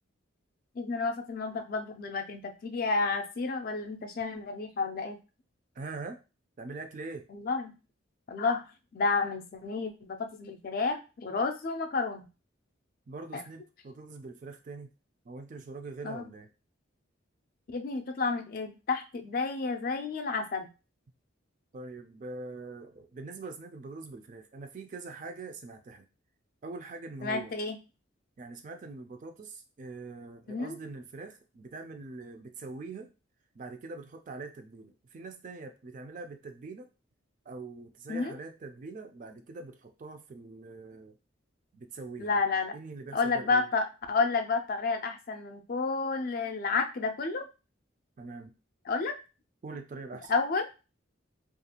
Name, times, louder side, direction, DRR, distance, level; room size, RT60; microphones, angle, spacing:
voice 1, 0.8-5.2 7.3-7.7 8.3-8.7 8.9-12.3 13.3-13.4 16.0-16.2 17.7-20.7 27.2-27.8 30.5-30.8 38.1-38.3 42.2-42.7 43.1-47.5 48.9-49.1 50.3-50.6, left 4 dB, 45° left, 6 dB, 0.4 m, -30 dB
voice 2, 5.7-6.2 6.6-7.3 13.1-14.9 15.2-16.5 21.7-26.1 26.6-27.5 28.4-33.1 33.5-36.9 37.5-41.2 41.7-42.4 42.7-43.7 48.2-48.5 49.6-50.3, right 3 dB, 40° right, 7 dB, 0.3 m, -43 dB
2.4 x 2.3 x 2.8 m, 0.30 s
head